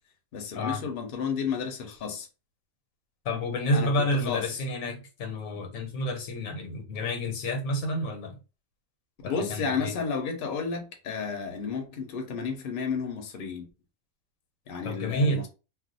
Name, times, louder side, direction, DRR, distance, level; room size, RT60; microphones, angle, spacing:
voice 1, 0.3-2.3 3.7-3.9 4.3-4.5 9.2-13.7 14.7-15.5, left 5 dB, 50° left, 0.8 m, -32 dB
voice 2, 3.2-8.4 9.2-10.0 14.8-15.5, left 1 dB, 80° left, 1.2 m, -29 dB
2.4 x 2.2 x 3.9 m
omnidirectional pair, 1.4 m